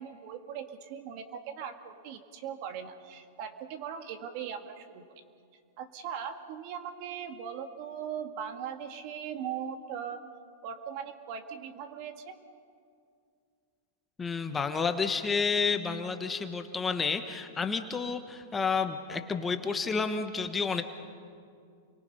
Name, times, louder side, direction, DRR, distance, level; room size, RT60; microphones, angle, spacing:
voice 1, 0.0-5.0 5.8-10.2 10.6-12.4, right 8 dB, 50° right, 6 dB, 2.1 m, -39 dB
voice 2, 14.2-20.8, left 5 dB, 15° left, 7 dB, 1.2 m, -30 dB
29.5 x 23.5 x 5.6 m, 2.3 s
hypercardioid pair, 135°, 0 cm